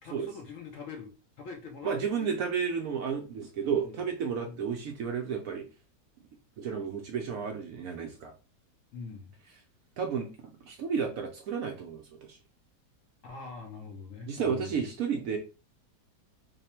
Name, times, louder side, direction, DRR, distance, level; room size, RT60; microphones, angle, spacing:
voice 1, 0.0-2.3 3.6-4.0 4.4-4.6 8.9-9.4 13.2-14.8, left 4 dB, 65° left, 0.9 m, -44 dB
voice 2, 1.8-5.7 6.6-8.3 10.0-12.4 14.3-15.4, right 6 dB, 70° right, 0.8 m, -32 dB
3.3 x 2.1 x 4.2 m
omnidirectional pair, 1.8 m